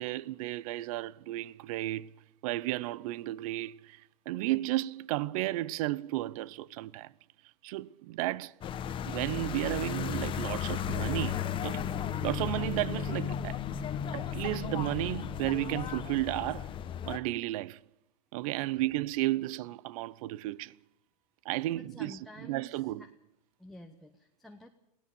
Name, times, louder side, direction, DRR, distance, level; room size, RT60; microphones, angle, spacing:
voice 1, 0.0-2.1 2.4-4.0 4.3-7.1 7.6-8.5 9.0-11.8 12.2-13.6 14.1-16.7 17.1-17.8 18.3-20.7 21.4-23.0, right 16 dB, 55° right, 0.7 m, -33 dB
sound 1, 8.6-17.2, left 9 dB, 25° left, 1.1 m, -35 dB
voice 2, 21.8-23.1 23.6-24.7, left 1 dB, ahead, 1.0 m, -51 dB
22.0 x 16.5 x 6.9 m
supercardioid pair, 140°, 21 cm